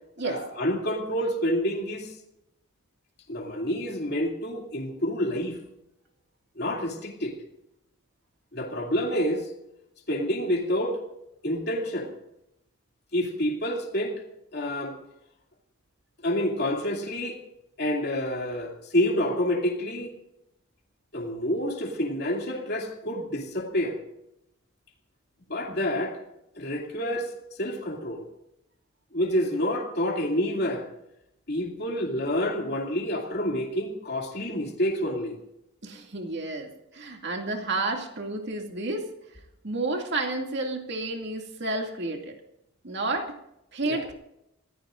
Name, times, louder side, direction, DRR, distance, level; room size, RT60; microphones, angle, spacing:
voice 1, 0.2-2.1 3.3-5.6 6.6-7.3 8.5-9.5 10.1-11.0 11.4-12.1 13.1-14.2 14.5-14.9 16.2-17.4 17.8-20.1 21.1-24.0 25.5-26.2 26.6-27.3 27.6-28.2 29.1-30.9 31.5-35.4 43.8-44.0, equal, 50° left, 0 dB, 2.6 m, -28 dB
voice 2, 35.8-39.1 39.6-42.4 42.8-43.4 43.7-44.1, right 2 dB, 55° right, 3 dB, 2.4 m, -31 dB
28.5 x 15.5 x 2.6 m, 0.84 s
head